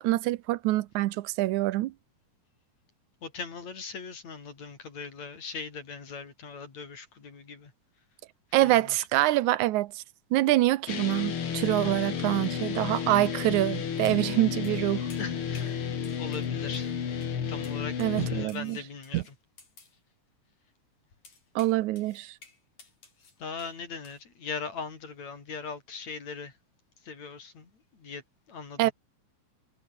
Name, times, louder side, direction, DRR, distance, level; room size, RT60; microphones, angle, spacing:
voice 1, 0.0-1.9 8.5-10.0 10.3-15.1 18.0-18.8 19.1-19.2 21.6-22.3 28.8-28.9, right 16 dB, 85° right, 2.2 m, -25 dB
voice 2, 3.2-7.7 8.5-9.1 15.2-15.8 16.2-17.0 17.5-19.4 23.4-26.6 27.0-28.9, left 5 dB, 65° left, 5.5 m, -40 dB
sound 1, 10.9-18.5, left 7 dB, 50° left, 2.6 m, -32 dB
sound 2, 12.9-13.1 14.1-14.3 14.6-14.8 15.1-15.8 16.0-17.0 17.2-17.4 17.6-20.0 21.2-23.8 24.0-24.2, left 4 dB, 80° left, 7.4 m, -55 dB
omnidirectional pair, 3.4 m